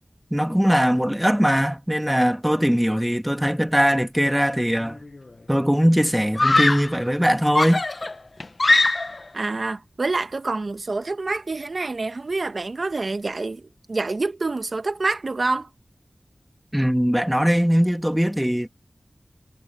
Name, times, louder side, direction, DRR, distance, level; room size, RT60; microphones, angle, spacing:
voice 1, 0.3-5.0 5.5-7.8 16.7-18.7, equal, 5° right, 1.5 m, -20 dB
Screaming, 4.8-5.3 6.4-7.0 7.5-9.3, left 2 dB, 55° left, 1.0 m, -21 dB
voice 2, 9.3-15.7, right 3 dB, 70° right, 1.2 m, -27 dB
wide cardioid pair, 45°, 0 cm